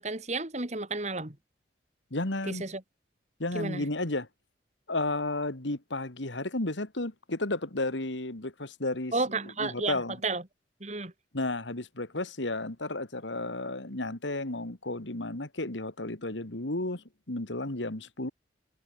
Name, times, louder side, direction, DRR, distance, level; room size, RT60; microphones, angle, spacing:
voice 1, 0.0-1.3 2.5-2.8 3.5-3.8 9.1-10.0 10.2-10.4 10.8-11.1, right 3 dB, 40° right, 2.6 m, -32 dB
voice 2, 2.1-2.7 3.4-4.3 4.9-9.1 9.6-10.2 11.3-18.3, left 2 dB, 85° left, 2.5 m, -33 dB
head